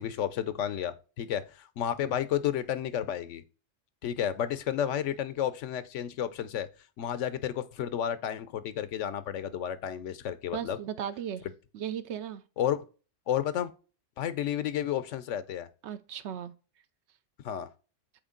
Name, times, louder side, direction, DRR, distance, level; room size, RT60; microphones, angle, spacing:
voice 1, 0.0-3.4 4.0-6.7 7.0-10.8 12.6-12.8 13.3-13.7 14.2-15.7 17.4-17.7, left 10 dB, 80° left, 1.0 m, -31 dB
voice 2, 10.5-11.5 11.7-12.4 15.8-16.5, right 9 dB, 70° right, 0.9 m, -36 dB
8.0 x 3.2 x 3.7 m
omnidirectional pair, 1.2 m